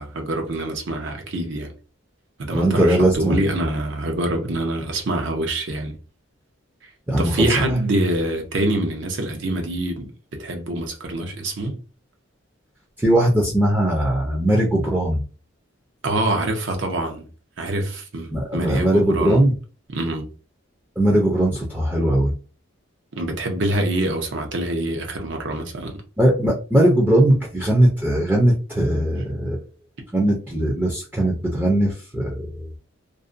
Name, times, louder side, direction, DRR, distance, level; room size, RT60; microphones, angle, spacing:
voice 1, 0.0-1.7 2.4-6.0 7.2-11.8 16.0-17.2 17.6-19.4 19.9-20.3 23.2-26.0, right 1 dB, 60° right, 0.6 m, -25 dB
voice 2, 2.5-3.4 7.1-7.5 13.0-15.2 18.3-19.5 21.0-22.3 26.2-29.6 30.1-32.7, right 1 dB, 10° right, 0.5 m, -19 dB
2.5 x 2.1 x 2.5 m
head